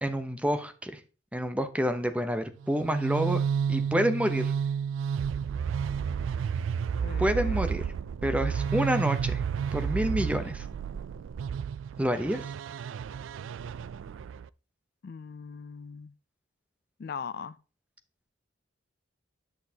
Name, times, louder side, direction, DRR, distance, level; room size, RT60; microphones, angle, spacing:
voice 1, 0.0-1.0 1.3-3.4 3.7-4.5 7.2-7.8 8.2-9.4 9.7-10.6 12.0-12.4, equal, 5° right, 0.6 m, -28 dB
sound 1, 2.6-14.5, right 7 dB, 75° right, 0.3 m, -31 dB
voice 2, 7.0-7.6 15.0-16.1 17.0-17.6, left 6 dB, 50° left, 0.3 m, -40 dB
10.0 x 6.3 x 2.8 m
head